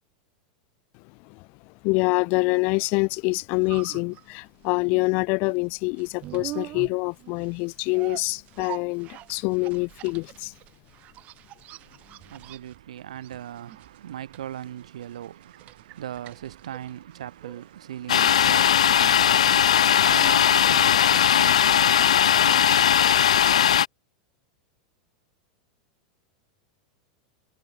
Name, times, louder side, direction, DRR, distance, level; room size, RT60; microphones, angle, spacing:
voice 1, 1.8-10.5, left 31 dB, 55° left, 0.8 m, -25 dB
sound 1, 3.1-21.1 21.4-21.5, right 16 dB, 45° right, 2.5 m, -45 dB
voice 2, 11.7-23.2, right 11 dB, 80° right, 5.8 m, -40 dB
Domestic sounds home sounds, 18.1-23.9, left 9 dB, 90° left, 0.7 m, -19 dB
hypercardioid pair, 110°, 3 cm